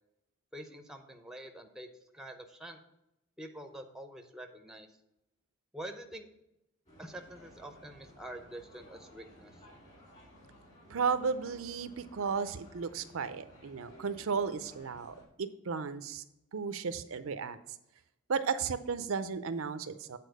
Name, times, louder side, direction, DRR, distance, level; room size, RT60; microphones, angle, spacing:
voice 1, 0.5-1.9 2.1-2.8 3.4-4.9 5.7-6.3 7.0-9.5, right 1 dB, ahead, 5 dB, 0.6 m, -46 dB
sound 1, 6.9-15.2, equal, 30° left, 2.4 m, -56 dB
voice 2, 10.9-16.2 16.5-17.6 18.3-20.2, right 5 dB, 70° right, 11 dB, 0.5 m, -34 dB
8.3 x 4.3 x 6.5 m, 0.85 s
head